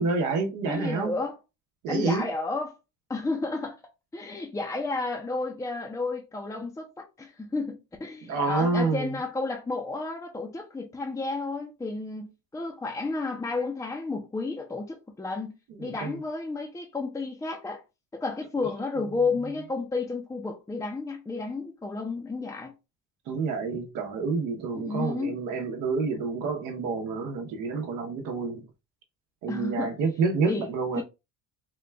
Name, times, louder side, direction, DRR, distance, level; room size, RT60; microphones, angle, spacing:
voice 1, 0.0-1.1 1.8-2.2 8.2-9.2 15.8-16.2 23.3-28.7 29.4-31.0, right 4 dB, 75° right, 0.9 m, -28 dB
voice 2, 0.7-1.4 1.9-2.8 3.1-3.8 4.1-17.8 18.1-22.7 24.7-25.4 29.5-29.9 30.5-30.7 31.0-31.1, left 3 dB, 10° left, 0.5 m, -32 dB
3.8 x 2.2 x 3.3 m
cardioid pair, 130°, 30 cm